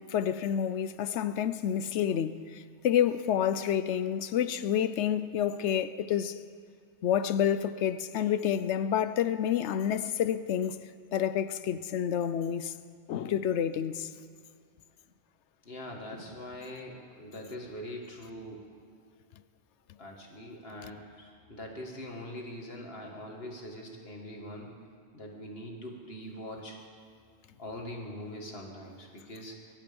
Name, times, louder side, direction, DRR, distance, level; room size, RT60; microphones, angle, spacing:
voice 1, 0.0-6.4 7.0-10.8 11.1-12.7 13.1-14.1, left 9 dB, 90° left, 0.9 m, -29 dB
voice 2, 15.6-18.8 20.0-24.7 25.1-26.8 27.6-29.6, left 1 dB, 60° left, 2.4 m, -42 dB
23.5 x 11.5 x 5.3 m
omnidirectional pair, 1.1 m